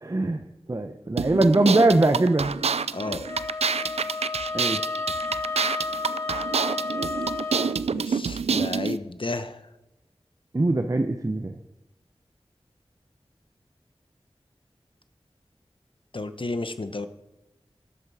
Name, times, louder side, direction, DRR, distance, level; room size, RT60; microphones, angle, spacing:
voice 1, 0.0-0.4 0.7-2.5 4.5-4.8 10.5-11.5, right 2 dB, 35° right, 7 dB, 0.8 m, -21 dB
sound 1, 1.2-9.0, right 5 dB, 80° right, 0.4 m, -27 dB
voice 2, 2.9-3.2 7.9-9.6 16.1-17.1, left 2 dB, 55° left, 10 dB, 1.0 m, -32 dB
Wind instrument woodwind instrument, 3.2-7.8, left 3 dB, 30° left, 1.5 m, -32 dB
12.5 x 8.5 x 4.8 m, 0.96 s
wide cardioid pair, 45°, 10 cm